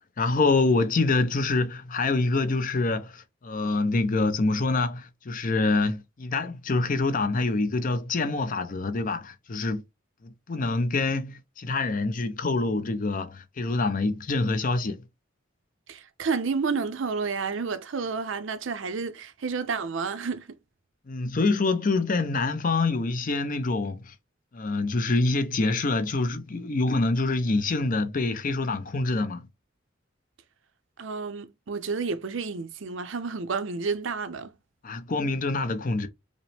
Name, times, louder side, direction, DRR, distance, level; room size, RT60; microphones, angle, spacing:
voice 1, 0.2-9.8 10.2-15.0 21.1-24.1 24.5-29.5 34.8-36.1, left 3 dB, 45° left, 0.6 m, -26 dB
voice 2, 15.9-20.5 31.0-34.5, right 5 dB, 75° right, 0.6 m, -30 dB
5.1 x 2.0 x 3.3 m
head